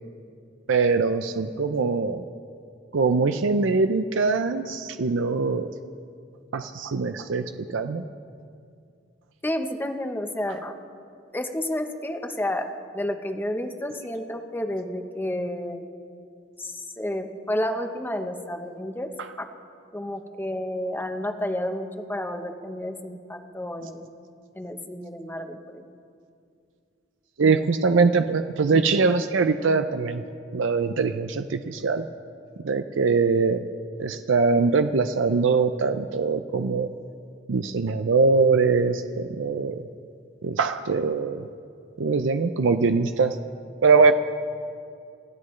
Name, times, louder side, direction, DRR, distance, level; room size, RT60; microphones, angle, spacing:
voice 1, 0.7-2.2 2.9-5.7 6.5-7.4 7.7-8.0 27.4-30.2 30.5-32.1 32.6-33.6 34.0-36.9 37.5-39.8 40.4-41.5 42.0-43.4 43.8-44.1, right 4 dB, 90° right, 8 dB, 0.5 m, -22 dB
voice 2, 9.4-10.8 11.3-15.9 16.6-19.4 19.9-24.1 24.5-25.8, left 1 dB, 10° left, 6 dB, 0.9 m, -31 dB
28.5 x 14.0 x 3.2 m, 2.4 s
head